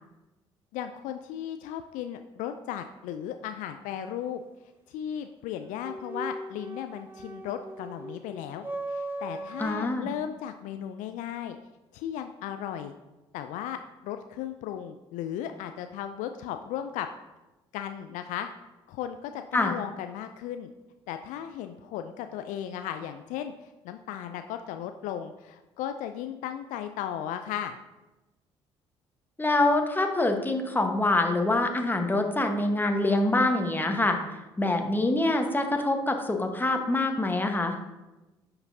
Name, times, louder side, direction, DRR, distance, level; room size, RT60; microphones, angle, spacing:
voice 1, 0.7-4.4 4.9-11.6 11.9-12.9 13.3-17.1 17.7-18.5 18.9-20.7 21.1-27.8, left 10 dB, 60° left, 8 dB, 0.4 m, -36 dB
sound 1, 5.8-9.7, right 2 dB, 15° right, 1.2 m, -38 dB
voice 2, 9.6-10.1 19.5-19.7 29.4-34.2 34.6-37.8, left 2 dB, 15° left, 4 dB, 1.3 m, -25 dB
10.5 x 5.9 x 2.8 m, 1.1 s
figure-of-eight pair, 50°, 15 cm